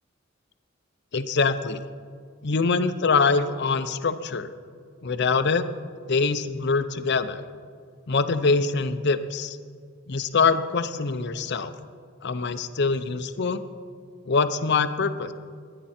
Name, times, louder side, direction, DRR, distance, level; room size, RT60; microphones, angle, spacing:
voice 1, 1.1-1.8 2.4-4.5 5.0-5.7 6.1-7.4 8.1-9.6 10.1-11.7 12.2-13.6 14.3-15.3, left 4 dB, 55° left, 11 dB, 0.7 m, -24 dB
22.0 x 10.0 x 4.3 m, 2.1 s
head